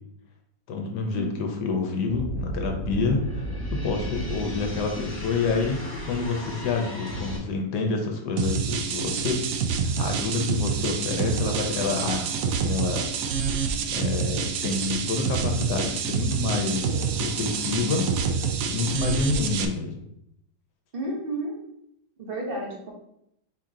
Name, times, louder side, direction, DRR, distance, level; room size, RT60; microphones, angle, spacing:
voice 1, 0.7-3.4 3.7-9.4 10.0-12.2 12.6-13.1 13.9-18.1 18.7-20.1, left 4 dB, 70° left, 3 dB, 1.3 m, -28 dB
sound 1, 2.1-7.4, right 1 dB, 10° right, 0.8 m, -33 dB
sound 2, 8.4-19.7, right 6 dB, 70° right, 0.8 m, -27 dB
voice 2, 20.9-21.6 22.2-22.9, right 1 dB, 35° right, -1 dB, 1.1 m, -31 dB
5.0 x 2.9 x 3.7 m, 0.74 s
omnidirectional pair, 1.9 m